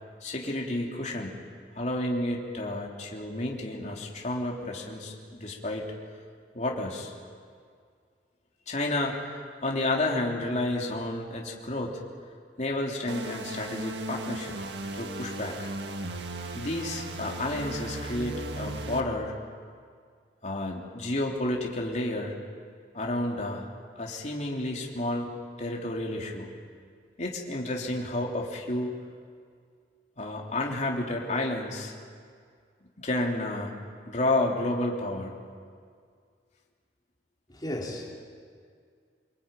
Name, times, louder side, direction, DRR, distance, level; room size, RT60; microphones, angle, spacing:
voice 1, 0.2-1.4 1.7-5.9 6.5-7.1 8.7-12.0 12.6-14.6 14.9-15.7 16.5-19.4 20.4-22.4 22.9-23.7 24.0-25.3 25.6-26.5 27.2-28.9 30.2-31.9 33.0-33.7 34.1-35.4, left 1 dB, 40° left, -1 dB, 3.4 m, -31 dB
sound 1, 13.1-19.0, right 2 dB, 75° right, 1.8 m, -36 dB
voice 2, 37.5-38.1, left 1 dB, 25° left, -2 dB, 4.5 m, -34 dB
25.0 x 23.0 x 9.1 m, 2.1 s
head